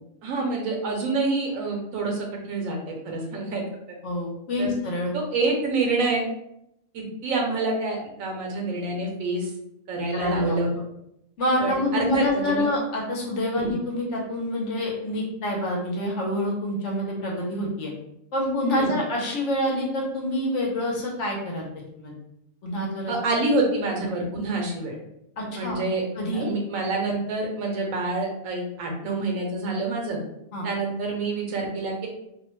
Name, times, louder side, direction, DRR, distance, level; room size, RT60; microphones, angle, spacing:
voice 1, 0.2-3.6 4.6-4.7 5.1-6.2 6.9-9.5 9.9-10.7 11.6-12.7 13.5-13.7 18.7-18.9 23.1-24.9 25.5-26.0 26.3-30.2 30.6-32.1, right 3 dB, 80° right, 1 dB, 1.1 m, -27 dB
voice 2, 4.0-5.1 10.1-10.6 11.4-17.9 18.3-21.7 22.0-22.1 22.6-23.1 25.4-25.8 26.2-26.5 30.5-30.7, left 1 dB, 65° left, -2 dB, 1.0 m, -27 dB
2.7 x 2.1 x 3.0 m, 0.80 s
omnidirectional pair, 1.4 m